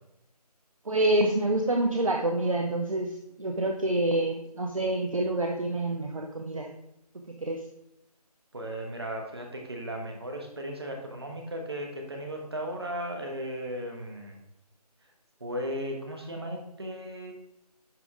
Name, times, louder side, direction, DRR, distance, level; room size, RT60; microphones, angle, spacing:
voice 1, 0.9-6.7 7.4-7.6, right 1 dB, 55° right, 2 dB, 0.7 m, -27 dB
voice 2, 8.5-14.4 15.4-17.3, equal, 40° right, 2 dB, 1.3 m, -36 dB
10.5 x 3.5 x 3.7 m, 0.84 s
figure-of-eight pair, 160°, 20 cm